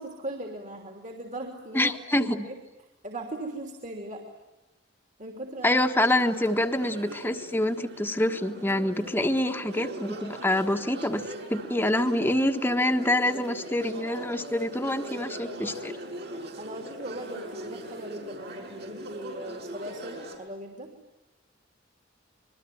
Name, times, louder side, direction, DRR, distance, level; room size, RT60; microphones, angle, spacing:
voice 1, 0.0-1.9 2.2-2.6 3.0-4.3 5.2-5.8 16.6-20.9, right 1 dB, 40° right, 3 dB, 3.3 m, -39 dB
voice 2, 1.7-2.5 5.6-11.2 11.5-15.9, left 1 dB, 10° left, 6 dB, 1.4 m, -26 dB
sound 1, 6.0-20.4, right 1 dB, 60° right, 6.3 m, -40 dB
27.0 x 22.5 x 9.5 m, 1.0 s
head